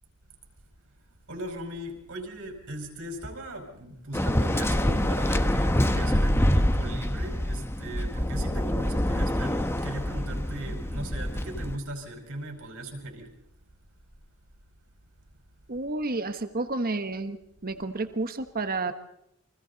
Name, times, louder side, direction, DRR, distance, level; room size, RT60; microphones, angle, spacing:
voice 1, 1.3-13.3, right 1 dB, 65° right, 3 dB, 5.0 m, -38 dB
Waves surf, 4.1-11.8, left 1 dB, 10° left, 1.0 m, -26 dB
voice 2, 15.7-18.9, right 3 dB, 40° right, 9 dB, 1.4 m, -31 dB
29.5 x 24.0 x 4.1 m, 0.80 s
head